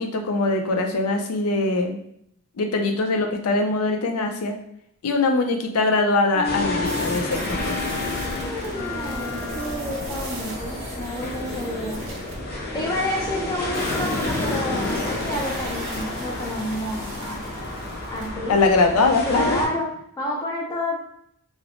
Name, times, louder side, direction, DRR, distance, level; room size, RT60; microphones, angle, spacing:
voice 1, 0.0-2.0 2.6-4.6 5.0-7.8 18.5-19.8, left 3 dB, 90° left, 4 dB, 0.5 m, -22 dB
sound 1, 6.3-10.2, left 4 dB, 60° left, 1.2 m, -32 dB
sound 2, 6.4-19.7, left 2 dB, 45° left, 0.9 m, -30 dB
sound 3, 6.9-12.4 13.7-18.3, right 2 dB, 60° right, 0.6 m, -39 dB
voice 2, 8.4-12.0 12.7-17.5 18.1-18.6 19.2-19.9 20.2-21.1, left 1 dB, 15° left, -2 dB, 0.5 m, -30 dB
3.1 x 2.0 x 2.5 m, 0.71 s
head